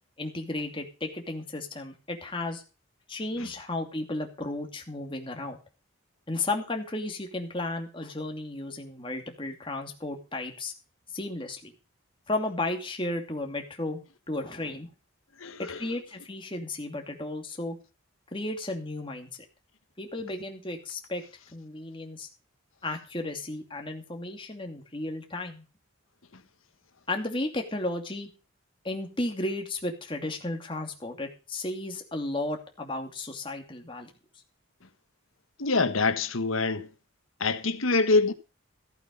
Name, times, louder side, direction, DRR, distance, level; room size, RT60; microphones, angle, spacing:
voice 1, 0.2-2.6 3.1-5.6 6.3-10.7 11.1-11.7 12.3-14.0 14.3-14.9 15.7-17.8 18.3-19.3 20.0-21.2 21.5-22.3 22.8-25.6 27.1-28.3 28.8-34.1, left 2 dB, 25° left, 2.6 m, -34 dB
voice 2, 15.4-15.8 35.6-36.9 37.4-38.3, left 3 dB, 85° left, 1.4 m, -25 dB
15.5 x 8.5 x 5.4 m
head